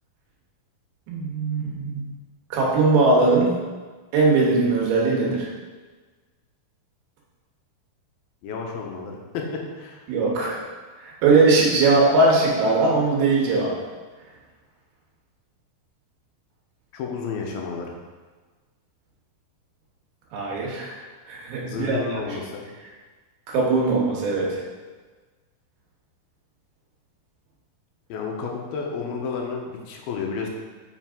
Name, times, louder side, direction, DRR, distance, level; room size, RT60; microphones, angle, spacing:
voice 1, 1.1-2.1 2.5-3.6 4.1-5.5 10.1-10.6 11.0-13.7 20.3-21.0 21.3-22.4 23.5-24.6, right 3 dB, 85° right, -3 dB, 3.3 m, -20 dB
voice 2, 8.4-10.1 16.9-17.9 21.6-22.6 28.1-30.5, left 5 dB, 90° left, 1 dB, 2.7 m, -31 dB
7.4 x 5.3 x 3.7 m, 1.4 s
omnidirectional pair, 4.3 m